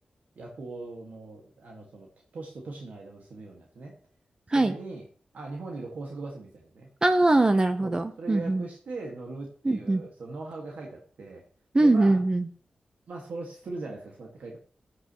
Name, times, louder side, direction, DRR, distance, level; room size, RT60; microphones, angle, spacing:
voice 1, 0.4-2.1 2.3-3.9 4.5-5.0 5.3-6.9 7.8-11.4 11.8-12.2 13.1-14.6, right 3 dB, 80° right, -1 dB, 1.9 m, -40 dB
voice 2, 7.0-8.6 9.6-10.0 11.7-12.5, right 2 dB, 30° right, 9 dB, 0.8 m, -22 dB
15.0 x 10.0 x 3.1 m, 0.43 s
cardioid pair, 70°, 3 cm